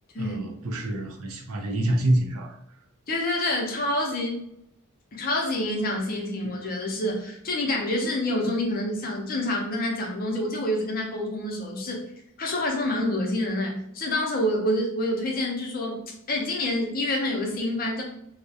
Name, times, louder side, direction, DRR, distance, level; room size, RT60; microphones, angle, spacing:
voice 1, 0.2-2.6, right 1 dB, 85° right, 2 dB, 0.5 m, -26 dB
voice 2, 3.1-4.4 5.1-12.0 12.4-16.0 16.3-18.0, left 1 dB, 40° left, 1 dB, 0.5 m, -27 dB
2.3 x 2.0 x 2.7 m, 0.75 s
head